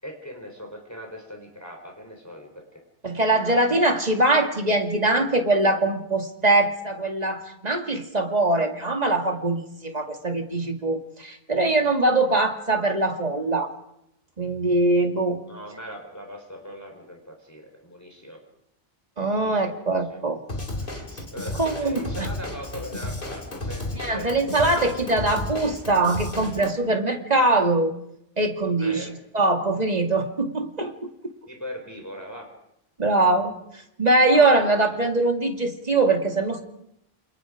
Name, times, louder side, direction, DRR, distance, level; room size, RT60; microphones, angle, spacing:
voice 1, 0.0-2.8 15.5-18.4 19.3-20.2 21.3-24.9 28.8-29.1 31.5-32.5 34.3-34.8, equal, 15° left, 2 dB, 4.1 m, -39 dB
voice 2, 3.0-13.7 14.4-15.4 19.2-20.4 20.9-21.0 21.6-22.3 23.9-27.9 28.4-29.1 29.3-31.1 33.0-33.5 34.0-36.6, right 2 dB, 40° right, 4 dB, 2.6 m, -22 dB
Drum kit / Drum, 20.5-26.7, left 2 dB, 55° left, 3.1 m, -33 dB
28.5 x 27.5 x 5.0 m, 0.79 s
omnidirectional pair, 1.1 m